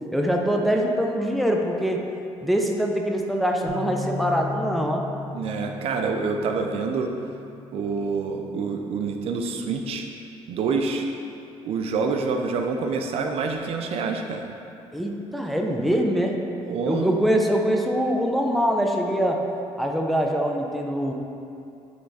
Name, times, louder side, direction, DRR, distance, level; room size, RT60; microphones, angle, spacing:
voice 1, 0.1-2.1 2.4-5.1 14.9-16.4 16.9-19.4 19.8-21.1, equal, ahead, 1 dB, 0.6 m, -23 dB
Bass guitar, 3.7-9.9, left 3 dB, 85° left, 1.4 m, -38 dB
voice 2, 5.3-7.1 7.7-10.1 10.5-11.1 11.6-14.5 16.7-17.2, right 4 dB, 60° right, 3 dB, 0.6 m, -27 dB
9.5 x 3.4 x 4.2 m, 2.6 s
cardioid pair, 105°, 11 cm